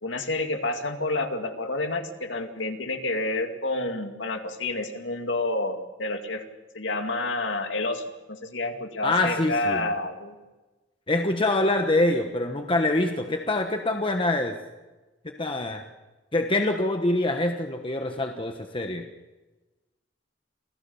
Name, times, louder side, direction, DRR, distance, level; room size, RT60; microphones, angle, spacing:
voice 1, 0.0-6.5 6.7-10.3, left 2 dB, 85° left, 5 dB, 2.2 m, -29 dB
voice 2, 9.0-9.9 11.1-14.5 15.4-15.8 16.3-19.1, left 2 dB, 30° left, 4 dB, 1.1 m, -25 dB
27.5 x 16.0 x 7.1 m, 1.2 s
head